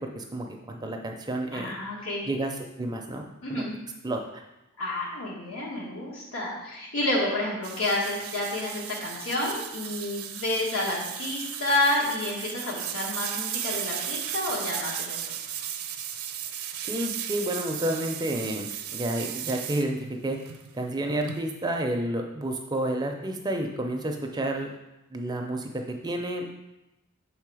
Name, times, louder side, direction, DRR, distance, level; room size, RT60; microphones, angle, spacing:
voice 1, 0.0-1.7 2.3-3.6 4.0-4.4 16.8-20.4 20.7-24.7 25.1-25.7 26.0-26.5, right 1 dB, 20° right, 3 dB, 0.5 m, -30 dB
voice 2, 1.5-2.2 3.4-3.7 4.8-15.2, left 1 dB, 70° left, -4 dB, 1.4 m, -29 dB
sound 1, 7.6-19.8 20.3-21.5, right 10 dB, 75° right, 0.6 m, -35 dB
6.1 x 3.8 x 4.8 m, 0.94 s
head